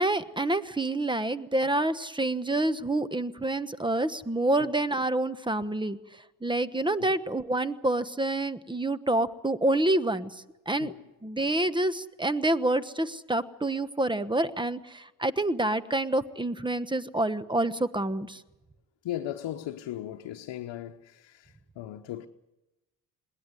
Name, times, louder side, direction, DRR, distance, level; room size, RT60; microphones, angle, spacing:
voice 1, 0.0-6.0 6.4-10.9 11.2-18.4, right 1 dB, 10° right, 1.1 m, -27 dB
voice 2, 19.0-22.3, left 12 dB, 75° left, 1.0 m, -37 dB
21.0 x 17.5 x 9.7 m
supercardioid pair, 55°, 44 cm